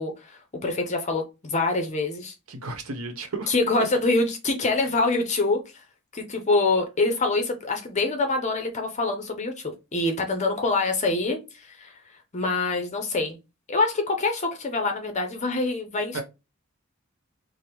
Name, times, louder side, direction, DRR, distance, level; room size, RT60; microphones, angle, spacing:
voice 1, 0.0-2.3 3.5-5.8 6.1-12.0 12.3-13.4 13.7-16.2, left 3 dB, 30° left, 0.6 m, -25 dB
voice 2, 2.5-3.5 16.1-16.2, right 3 dB, 70° right, 0.9 m, -33 dB
5.0 x 2.0 x 2.9 m
head